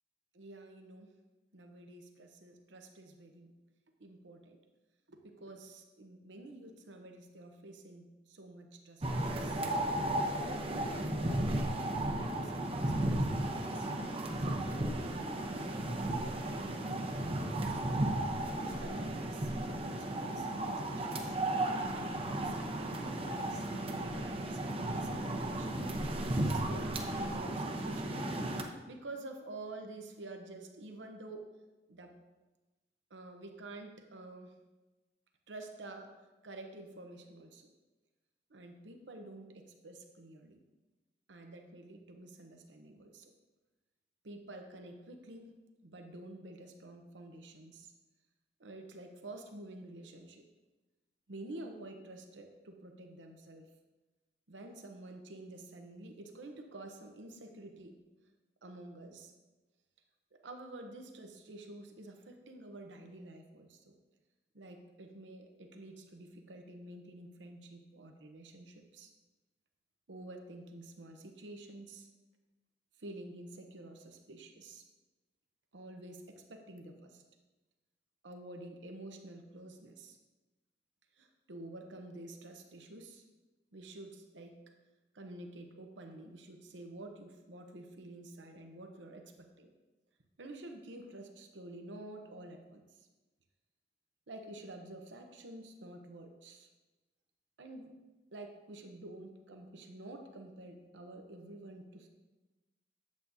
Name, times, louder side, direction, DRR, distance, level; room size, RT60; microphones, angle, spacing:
voice 1, 0.3-1.1 1.5-3.5 4.0-4.6 5.1-9.6 10.4-11.6 12.1-13.9 14.4-17.8 18.6-21.4 21.8-25.9 26.4-28.5 28.9-31.5 31.9-32.1 33.1-34.5 35.5-36.1 36.4-37.7 38.5-40.6 41.3-43.3 44.2-45.6 45.8-47.9 48.6-50.4 51.3-53.7 54.5-58.0 58.6-59.3 60.4-63.9 64.5-69.1 70.1-72.1 73.0-74.8 75.7-77.2 78.2-80.2 81.2-83.2 83.7-84.6 85.1-89.7 90.4-93.1 94.3-96.7 97.6-98.0 98.3-102.1, right 2 dB, 85° right, 4 dB, 0.8 m, -49 dB
sound 1, 9.0-28.6, right 1 dB, 30° right, 0.7 m, -34 dB
8.4 x 8.2 x 2.7 m, 1.1 s
head